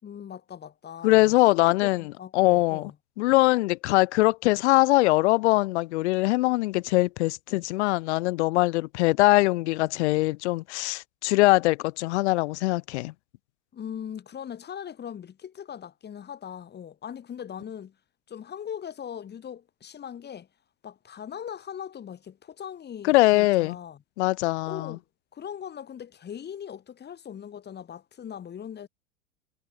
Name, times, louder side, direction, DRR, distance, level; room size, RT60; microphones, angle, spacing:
voice 1, 0.0-2.9 13.7-18.0 18.3-20.5 20.8-24.0 24.6-25.0 25.3-28.9, left 8 dB, 25° left, 3.4 m, -40 dB
voice 2, 1.0-2.9 3.2-13.1 23.0-23.7 24.2-25.0, left 20 dB, 60° left, 1.4 m, -22 dB
hypercardioid pair, 95°, 38 cm